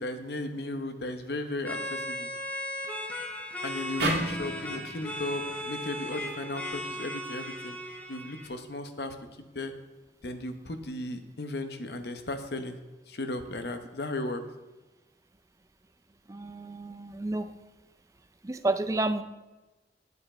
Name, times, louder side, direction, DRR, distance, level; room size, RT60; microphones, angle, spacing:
voice 1, 0.0-2.3 3.6-7.8 8.1-9.1 9.5-9.7 10.2-12.8 13.1-14.4, left 2 dB, 70° left, 7 dB, 0.9 m, -35 dB
sound 1, 1.6-8.5, left 1 dB, 10° left, 1.0 m, -37 dB
sound 2, 4.0-7.2, right 2 dB, 80° right, 1.6 m, -35 dB
voice 2, 16.3-17.5 18.4-19.2, right 2 dB, 20° right, 9 dB, 0.4 m, -30 dB
9.5 x 7.6 x 4.3 m, 1.1 s
head